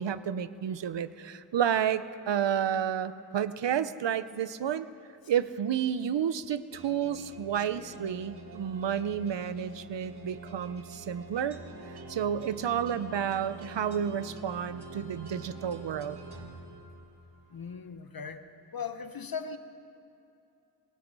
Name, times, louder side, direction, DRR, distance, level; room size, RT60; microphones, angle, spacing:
voice 1, 0.0-4.9 5.3-11.6 11.9-16.2, right 9 dB, 80° right, 14 dB, 0.8 m, -31 dB
sound 1, 6.7-17.4, right 2 dB, 65° right, 2.1 m, -46 dB
voice 2, 17.5-18.4 18.7-19.6, left 6 dB, 55° left, 9 dB, 1.1 m, -38 dB
22.5 x 21.5 x 5.5 m, 2.7 s
wide cardioid pair, 90°, 43 cm